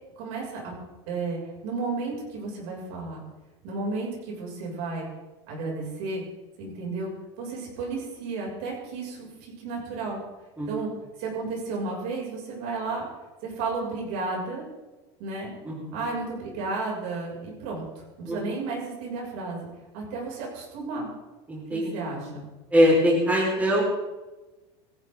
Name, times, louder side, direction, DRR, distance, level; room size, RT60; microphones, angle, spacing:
voice 1, 0.2-0.7 1.1-3.2 3.6-5.1 5.5-6.2 6.6-7.1 7.4-10.2 10.7-10.9 11.2-13.1 13.4-14.7 15.2-15.5 15.9-17.9 18.2-19.7 19.9-21.1 21.7-22.4, right 3 dB, 70° right, -2 dB, 6.6 m, -33 dB
voice 2, 15.6-16.0 18.2-18.4 21.5-21.9 22.7-23.8, equal, 10° right, -3 dB, 4.9 m, -22 dB
18.5 x 14.5 x 3.9 m, 1.1 s
supercardioid pair, 130°, 14 cm